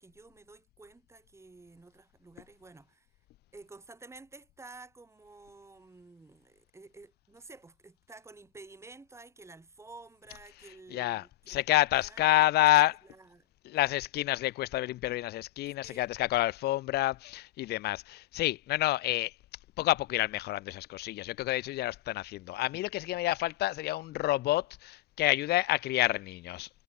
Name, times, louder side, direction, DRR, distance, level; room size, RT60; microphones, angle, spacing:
voice 1, 0.0-3.1 3.5-11.6 11.9-13.5 13.7-13.9 15.8-16.1, right 3 dB, 15° right, 7.4 m, -52 dB
voice 2, 10.9-12.9 13.6-19.3 19.8-26.7, left 16 dB, 85° left, 1.2 m, -28 dB
cardioid pair, 130°, 16 cm